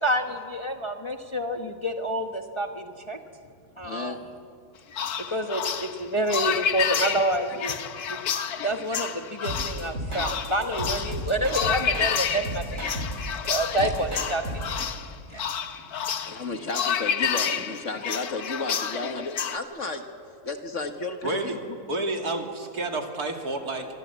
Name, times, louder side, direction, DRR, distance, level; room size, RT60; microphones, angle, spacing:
voice 1, 0.0-3.2 3.8-4.2 5.3-7.8 8.1-8.2 8.6-12.8 13.4-15.0 15.3-15.5, right 1 dB, 20° left, 4 dB, 1.1 m, -28 dB
voice 2, 3.8-4.2 16.3-20.0 20.4-21.6, left 3 dB, 50° left, 6 dB, 1.8 m, -33 dB
sound 1, 4.9-19.6, left 8 dB, 70° left, 1.5 m, -30 dB
sound 2, 9.4-12.2 12.4-14.8, right 1 dB, 40° right, 5.2 m, -33 dB
voice 3, 21.2-21.6 21.9-23.9, right 2 dB, 70° right, 3 dB, 2.9 m, -30 dB
26.0 x 23.5 x 8.2 m, 2.3 s
omnidirectional pair, 1.7 m